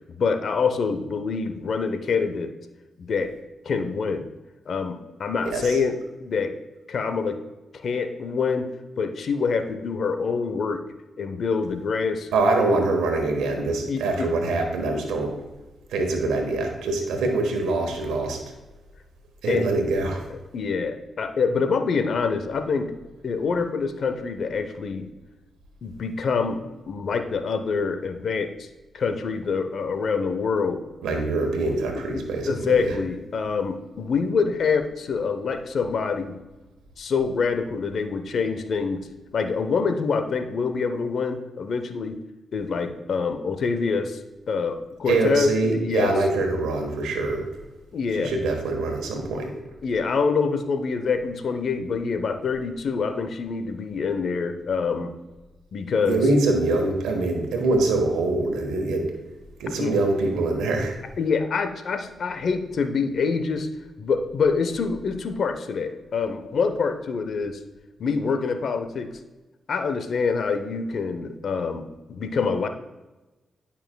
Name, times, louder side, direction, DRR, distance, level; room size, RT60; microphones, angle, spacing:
voice 1, 0.1-2.5 3.0-3.3 3.6-4.3 4.7-6.5 6.9-7.4 7.7-8.7 9.0-10.8 11.2-12.3 12.6-12.9 13.9-14.3 14.9-15.0 19.5-19.6 20.5-22.9 23.2-25.1 25.8-26.6 26.9-28.7 28.9-30.8 31.4-31.5 32.1-36.4 37.0-39.1 39.3-42.2 42.5-44.2 44.5-46.1 47.9-48.3 49.8-55.1 55.7-56.2 59.8-59.9 61.2-63.7 64.0-67.6 68.0-69.1 69.7-72.7, left 5 dB, 65° left, 8 dB, 0.7 m, -26 dB
voice 2, 12.3-15.3 15.9-18.4 19.4-20.2 31.0-32.9 45.1-47.5 48.2-49.5 56.1-59.1 59.6-60.9, right 2 dB, 90° right, 3 dB, 1.3 m, -24 dB
11.5 x 5.7 x 2.3 m, 1.1 s
supercardioid pair, 55°, 0 cm